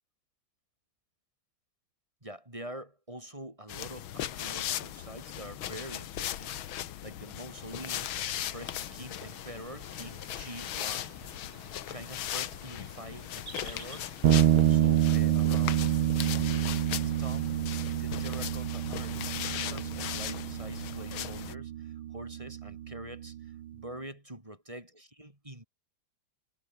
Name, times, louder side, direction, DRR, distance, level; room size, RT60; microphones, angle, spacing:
voice 1, 2.2-11.2 11.9-14.1 14.5-25.6, right 1 dB, 15° right, 3.9 m, -45 dB
sound 1, 3.7-21.5, left 12 dB, 75° left, 1.8 m, -38 dB
sound 2, 7.7-15.0, right 3 dB, 45° right, 4.9 m, -52 dB
sound 3, 14.2-23.7, right 12 dB, 80° right, 1.9 m, -28 dB
omnidirectional pair, 2.3 m